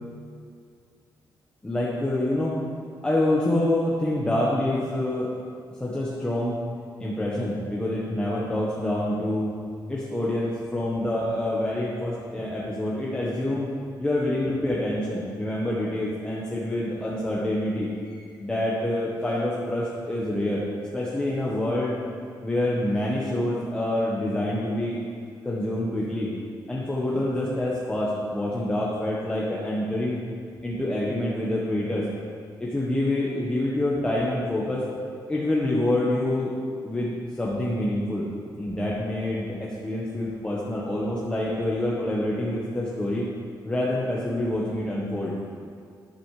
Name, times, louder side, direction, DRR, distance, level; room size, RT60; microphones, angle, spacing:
voice 1, 1.6-2.6 3.0-5.3 5.8-6.6 7.0-9.5 9.9-13.7 14.0-17.9 18.4-20.6 20.9-22.0 22.4-25.0 25.4-26.3 26.7-30.2 30.6-32.1 32.6-34.9 35.3-36.5 36.8-38.2 38.6-43.3 43.6-45.3, left 1 dB, 10° left, -6 dB, 1.1 m, -26 dB
10.5 x 10.0 x 3.2 m, 2.3 s
cardioid pair, 135°, 8 cm